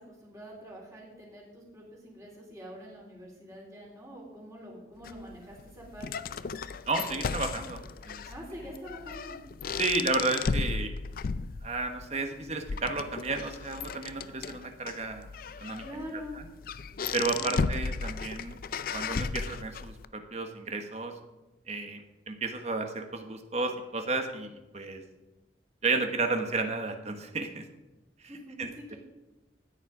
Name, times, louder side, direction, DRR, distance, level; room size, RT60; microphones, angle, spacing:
voice 1, 0.0-6.2 8.3-9.4 15.8-16.4 17.3-17.5 28.2-29.0, equal, 20° right, -3 dB, 3.8 m, -45 dB
sound 1, 5.0-20.0, left 5 dB, 50° left, 0.4 m, -35 dB
voice 2, 6.9-7.8 8.0-8.2 9.7-10.9 11.6-15.3 15.6-15.8 17.1-18.6 18.9-21.1 21.7-25.0 25.8-27.6 28.6-28.9, right 3 dB, 40° right, 5 dB, 1.3 m, -32 dB
13.5 x 9.8 x 4.9 m, 1.0 s
head